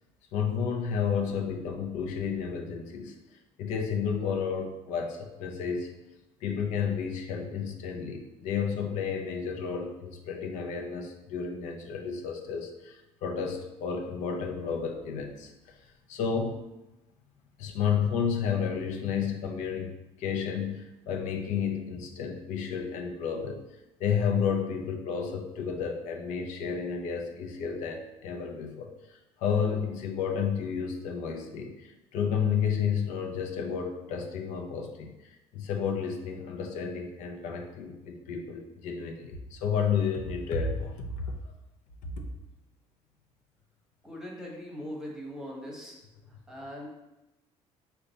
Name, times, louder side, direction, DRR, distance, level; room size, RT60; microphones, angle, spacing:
voice 1, 0.3-3.1 3.6-5.9 6.4-15.5 16.1-16.6 17.6-23.6 24.0-41.4 42.0-42.1, left 6 dB, 85° left, 2 dB, 0.6 m, -31 dB
voice 2, 44.0-46.0 46.5-46.9, equal, 5° right, -2 dB, 0.9 m, -40 dB
5.2 x 2.3 x 4.0 m, 0.98 s
cardioid pair, 140°, 12 cm